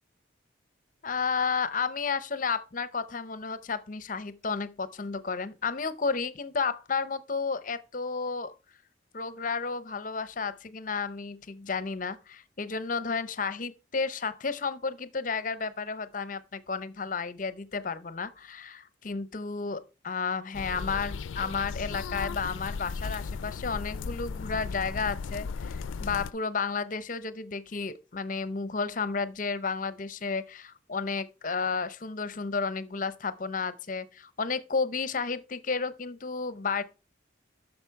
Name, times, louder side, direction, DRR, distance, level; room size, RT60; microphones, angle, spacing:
voice 1, 1.0-8.5 9.1-36.8, left 5 dB, 40° left, 0.6 m, -32 dB
sound 1, 20.5-26.3, left 5 dB, 80° left, 0.4 m, -36 dB
10.5 x 6.6 x 4.6 m
head